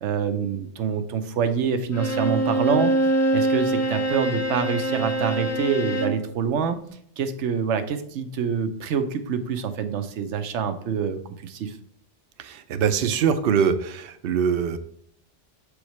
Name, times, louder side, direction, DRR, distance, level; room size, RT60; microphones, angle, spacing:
voice 1, 0.0-3.0 3.3-6.8 7.2-11.8, right 6 dB, 85° right, 9 dB, 1.0 m, -26 dB
Bowed string instrument, 1.9-6.3, right 1 dB, 25° left, 0.4 m, -24 dB
voice 2, 12.4-14.8, right 7 dB, 60° right, 10 dB, 0.7 m, -23 dB
7.0 x 4.9 x 3.1 m, 0.65 s
omnidirectional pair, 1.2 m